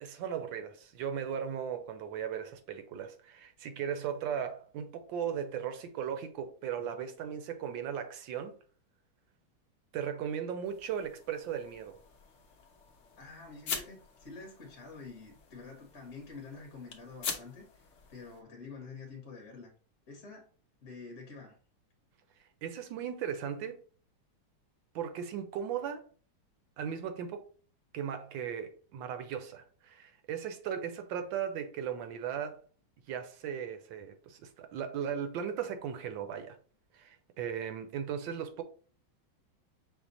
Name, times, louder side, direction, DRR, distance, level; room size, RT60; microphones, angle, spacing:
voice 1, 0.0-8.5 9.9-12.0 22.6-23.8 24.9-26.0 26.8-27.5 27.9-32.6 33.1-36.6 36.9-38.6, right 8 dB, 75° right, 1.3 m, -37 dB
sound 1, 10.6-18.4, left 6 dB, 80° left, 0.6 m, -44 dB
voice 2, 13.2-19.7 20.1-20.5 20.8-21.6, left 4 dB, 45° left, 1.0 m, -48 dB
5.9 x 2.1 x 3.9 m
omnidirectional pair, 2.2 m